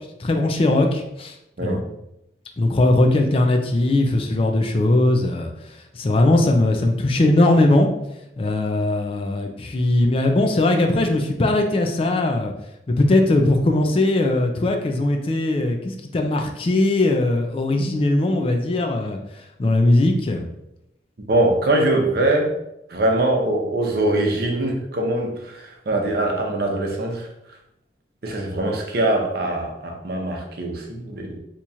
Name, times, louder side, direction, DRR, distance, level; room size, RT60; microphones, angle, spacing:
voice 1, 0.2-1.3 1.6-1.8 2.6-7.9 8.4-12.5 12.9-19.2 19.6-20.4, left 2 dB, 30° left, 4 dB, 0.3 m, -19 dB
voice 2, 21.3-22.5 22.9-27.3 28.2-31.4, right 2 dB, 60° right, 1 dB, 0.7 m, -22 dB
2.9 x 2.4 x 4.1 m, 0.84 s
head